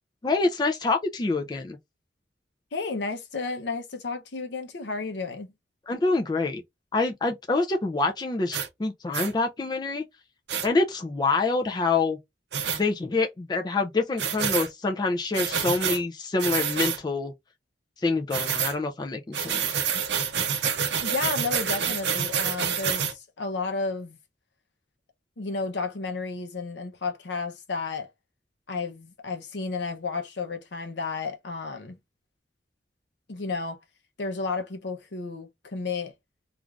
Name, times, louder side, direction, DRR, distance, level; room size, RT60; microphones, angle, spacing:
voice 1, 0.2-1.8 5.9-6.6 6.9-10.0 10.6-12.2 12.7-17.3 18.0-19.7, left 3 dB, 25° left, 0.4 m, -26 dB
voice 2, 2.7-5.5 21.0-24.2 25.4-28.1 28.7-32.0 33.3-33.8 34.2-36.1, left 4 dB, 70° left, 0.7 m, -32 dB
sound 1, 8.5-8.7 9.1-9.3 10.5-10.7 12.5-12.8 14.2-14.7 15.3-16.0 16.4-17.0 18.3-18.8 19.3-23.1, right 7 dB, 65° right, 0.5 m, -27 dB
2.5 x 2.4 x 3.1 m
head